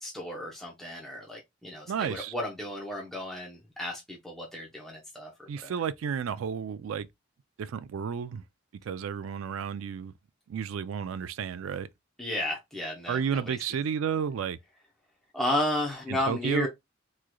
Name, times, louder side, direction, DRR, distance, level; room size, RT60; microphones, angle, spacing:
voice 1, 0.0-5.3 5.6-5.7 12.2-13.6 15.3-16.7, left 1 dB, ahead, 0.8 m, -33 dB
voice 2, 1.9-2.3 5.5-7.1 7.6-8.4 8.8-10.1 10.5-11.9 13.1-14.6 16.1-16.7, right 7 dB, 80° right, 0.3 m, -32 dB
3.6 x 3.1 x 2.2 m
head